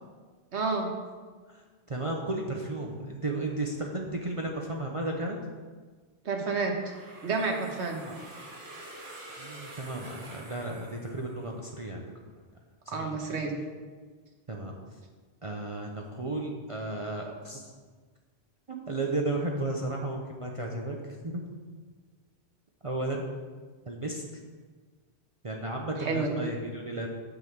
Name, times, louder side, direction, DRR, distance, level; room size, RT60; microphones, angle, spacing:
voice 1, 0.5-0.9 6.2-6.8 7.2-8.0 12.9-13.5 26.0-26.5, right 4 dB, 85° right, 2 dB, 1.4 m, -30 dB
voice 2, 1.9-5.4 8.0-8.3 9.4-12.1 12.9-13.4 14.5-14.7 15.4-17.6 18.7-21.0 21.2-21.4 22.8-23.2 23.9-24.2 25.4-27.1, right 2 dB, 35° right, 0 dB, 0.7 m, -34 dB
sound 1, 6.7-11.6, right 1 dB, 65° right, 1.6 m, -47 dB
9.3 x 3.9 x 7.0 m, 1.5 s
omnidirectional pair, 1.1 m